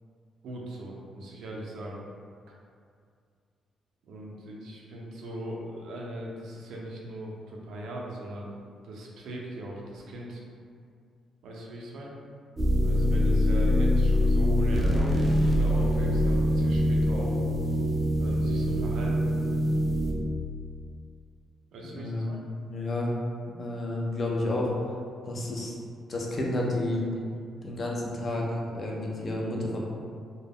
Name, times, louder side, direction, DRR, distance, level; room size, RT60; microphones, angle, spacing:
voice 1, 0.4-2.0 4.0-8.5 8.8-10.4 11.4-12.1 12.8-17.4 18.2-19.3 21.7-22.4, right 1 dB, 80° right, -2 dB, 0.5 m, -39 dB
sound 1, 12.6-20.1, left 1 dB, 25° right, 0.4 m, -24 dB
voice 2, 22.0-22.3 22.6-23.1 23.6-24.8 25.2-25.7 26.1-27.0 27.6-29.8, left 1 dB, 35° left, -2 dB, 0.4 m, -30 dB
2.2 x 2.0 x 3.4 m, 2.2 s
cardioid pair, 130°, 0 cm